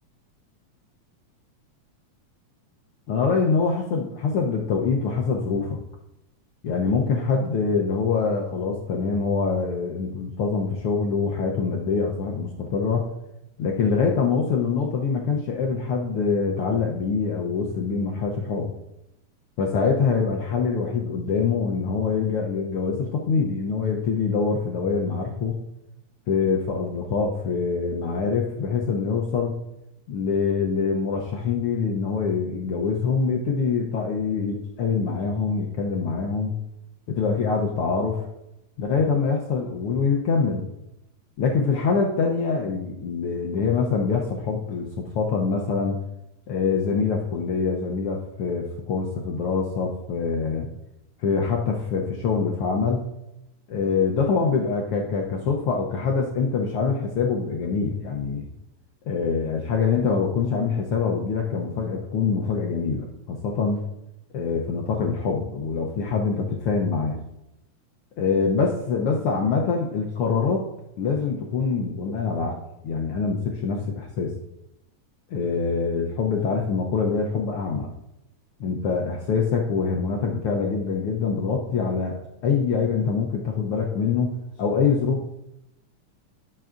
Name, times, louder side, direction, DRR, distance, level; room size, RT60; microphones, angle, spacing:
voice 1, 3.1-5.8 6.6-13.1 13.6-18.7 19.6-25.6 26.3-29.6 30.1-36.5 37.1-38.2 38.8-40.7 41.4-46.0 46.5-50.7 51.2-53.0 53.7-58.5 59.1-63.8 64.3-67.2 68.2-70.7 71.0-72.6 72.8-74.3 75.3-77.9 78.6-82.2 82.4-85.2, left 5 dB, 80° left, 0 dB, 1.2 m, -24 dB
15.0 x 6.7 x 2.5 m, 0.87 s
omnidirectional pair, 3.5 m